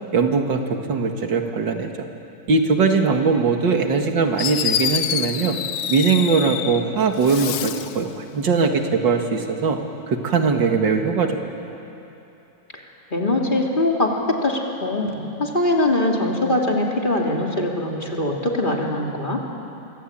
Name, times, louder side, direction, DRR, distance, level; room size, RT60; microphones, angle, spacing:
voice 1, 0.1-2.1 2.5-5.6 5.9-9.8 10.1-11.5, right 4 dB, 85° right, 4 dB, 2.5 m, -20 dB
Fireworks, 4.0-4.1 4.4-6.8 7.2-8.0, left 9 dB, 85° left, 1.6 m, -26 dB
voice 2, 13.1-19.4, left 1 dB, 25° left, -1 dB, 3.0 m, -22 dB
26.0 x 24.0 x 8.8 m, 2.9 s
omnidirectional pair, 1.9 m